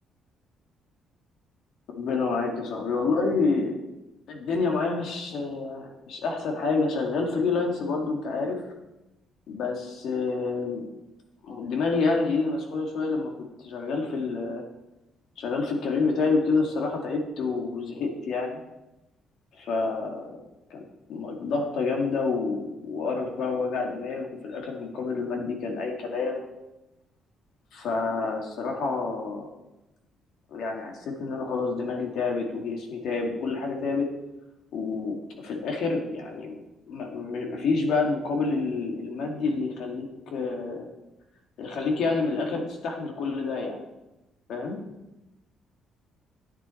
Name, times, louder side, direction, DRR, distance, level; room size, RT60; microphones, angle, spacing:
voice 1, 2.0-3.7 4.3-8.6 9.5-10.9 11.4-13.3 13.6-14.6 15.4-18.6 19.6-20.3 20.7-26.4 27.7-29.5 30.5-34.1 34.7-36.6 36.9-40.9 41.6-43.8 44.5-44.8, left 4 dB, 65° left, 2 dB, 2.2 m, -28 dB
10.0 x 10.0 x 4.5 m, 0.96 s
cardioid pair, 140°, 0 cm